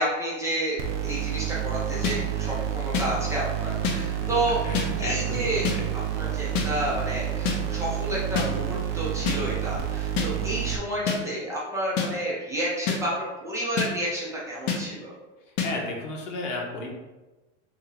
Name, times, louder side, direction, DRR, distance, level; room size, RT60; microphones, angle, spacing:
voice 1, 0.0-4.6 5.0-5.7 6.1-13.1 13.4-15.1, right 1 dB, 10° right, -6 dB, 0.5 m, -30 dB
sound 1, 0.8-10.8, right 10 dB, 65° right, 0.6 m, -29 dB
sound 2, 2.0-2.2 2.9-3.1 3.8-4.0 4.7-4.9 5.6-5.8 6.6-6.7 7.5-7.6 8.4-8.5 9.3-9.4 10.2-10.3 11.1-11.2 12.0-12.1 12.9-13.0 13.8-13.9 14.7-14.8 15.6-15.7, left 6 dB, 40° left, 0.6 m, -26 dB
voice 2, 3.9-5.4 5.7-5.9 15.6-16.9, left 2 dB, 80° left, 0 dB, 1.1 m, -34 dB
2.9 x 2.7 x 3.9 m, 1.2 s
supercardioid pair, 145°, 37 cm